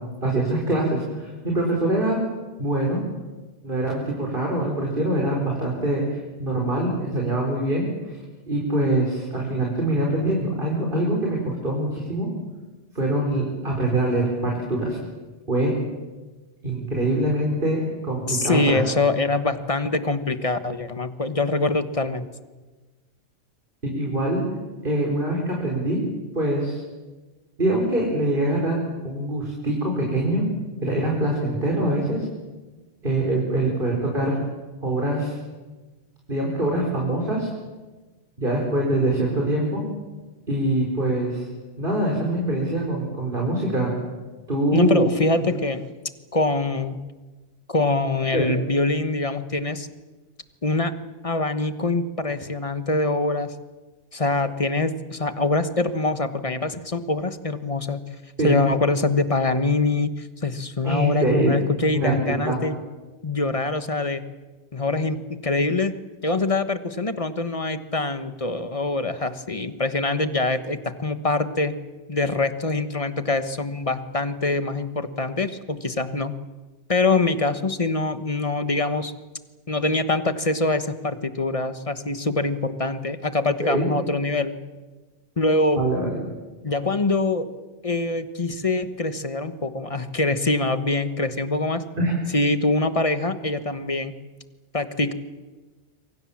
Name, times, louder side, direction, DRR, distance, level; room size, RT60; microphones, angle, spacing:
voice 1, 0.2-2.2 2.6-3.0 3.6-6.0 6.4-8.2 8.5-12.3 13.0-15.0 15.5-15.7 16.6-18.8 23.8-24.4 24.8-26.0 26.3-26.8 27.6-28.8 29.0-30.5 30.8-32.3 33.0-34.4 34.8-35.4 36.3-37.5 38.4-39.8 40.5-41.5 41.8-43.9 44.5-45.0 48.3-48.5 58.4-58.6 60.8-61.5 61.9-62.6 83.6-83.9 85.8-86.2 92.0-92.2, right 1 dB, 50° right, -1 dB, 5.2 m, -24 dB
voice 2, 18.3-22.3 44.7-45.8 46.3-47.0 47.7-49.9 50.6-50.9 51.2-53.5 54.1-58.0 58.4-62.8 63.2-64.2 64.7-66.0 66.2-71.8 72.1-76.4 76.9-79.1 79.7-84.6 85.4-85.8 86.6-87.5 87.8-91.8 92.3-94.2 94.7-95.1, left 2 dB, 30° left, 10 dB, 1.4 m, -24 dB
27.5 x 24.5 x 7.4 m, 1.3 s
omnidirectional pair, 1.2 m